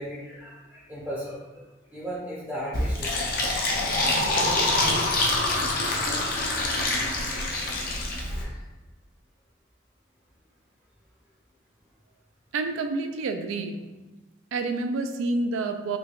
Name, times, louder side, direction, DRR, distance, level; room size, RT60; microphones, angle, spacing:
voice 1, 0.0-3.5 5.9-6.8 8.2-8.6, equal, 10° right, -8 dB, 0.5 m, -38 dB
Fill (with liquid), 2.7-8.4, left 2 dB, 45° left, 0.5 m, -25 dB
voice 2, 12.5-13.9 14.5-16.0, right 3 dB, 85° right, 6 dB, 0.3 m, -28 dB
3.3 x 3.0 x 2.4 m, 1.1 s
head